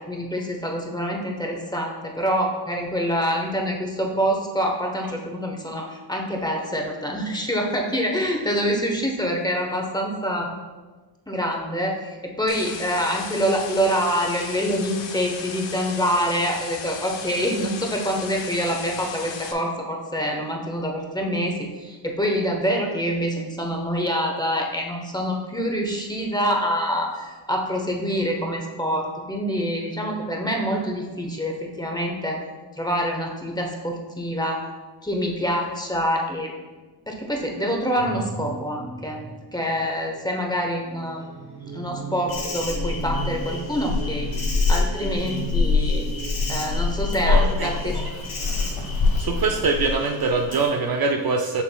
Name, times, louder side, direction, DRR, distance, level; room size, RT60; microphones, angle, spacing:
voice 1, 0.0-10.5 11.3-32.4 32.8-34.6 35.0-36.5 37.1-39.2 39.5-41.2 41.7-44.3 44.7-46.1 46.5-48.2, equal, 10° left, 0 dB, 1.0 m, -26 dB
sound 1, 12.5-19.5, left 6 dB, 65° left, 0.8 m, -36 dB
sound 2, 38.0-49.5, right 4 dB, 75° right, 1.7 m, -37 dB
Insect, 42.3-50.7, left 4 dB, 80° left, 1.7 m, -25 dB
voice 2, 47.2-47.9 49.2-51.6, right 4 dB, 50° right, 3 dB, 0.6 m, -23 dB
7.1 x 6.1 x 2.3 m, 1.3 s
cardioid pair, 95°, 49 cm